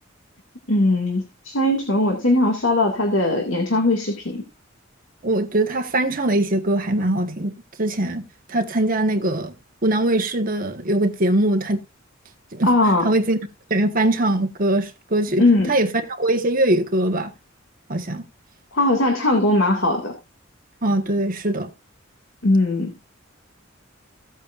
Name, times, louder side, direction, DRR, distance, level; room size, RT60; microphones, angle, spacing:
voice 1, 0.7-4.4 12.7-13.1 15.4-15.7 18.7-20.1 22.4-22.9, left 2 dB, 70° left, 2.2 m, -19 dB
voice 2, 5.2-8.2 8.5-9.5 9.8-11.8 12.5-12.7 13.0-13.4 13.7-17.3 17.9-18.2 20.8-21.7, right 1 dB, 45° right, 1.5 m, -21 dB
16.5 x 8.2 x 2.6 m
head